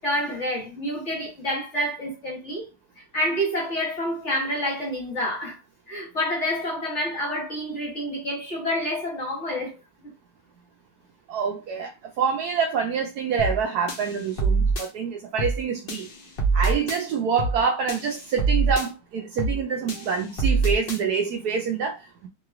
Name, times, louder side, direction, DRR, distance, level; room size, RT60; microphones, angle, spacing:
voice 1, 0.0-2.7 3.1-5.6 5.9-9.7 10.0-10.1 19.9-20.0, equal, 45° left, 1.2 m, -28 dB
voice 2, 11.3-11.9 12.2-16.1 16.5-22.3, right 6 dB, 70° right, 0.9 m, -26 dB
sound 1, 13.4-13.6 13.9-14.9 15.4-15.6 15.9-17.0 17.4-17.6 17.9-18.9 19.4-19.6 19.9-21.0, right 4 dB, 65° left, 0.5 m, -24 dB
3.0 x 2.9 x 2.3 m
omnidirectional pair, 2.0 m